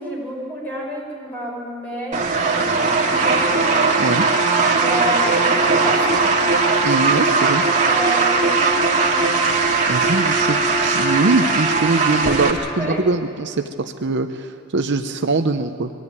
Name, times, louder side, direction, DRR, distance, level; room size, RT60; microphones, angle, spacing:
voice 1, 0.0-3.6 4.7-6.1 6.4-6.5 7.8-9.4 12.8-13.0, right 1 dB, 10° left, -4 dB, 5.8 m, -29 dB
sound 1, 2.1-12.5, right 3 dB, 35° right, 2.3 m, -18 dB
voice 2, 6.8-7.6 9.9-15.9, right 3 dB, 55° right, 7 dB, 0.7 m, -22 dB
22.5 x 15.0 x 9.6 m, 2.5 s
head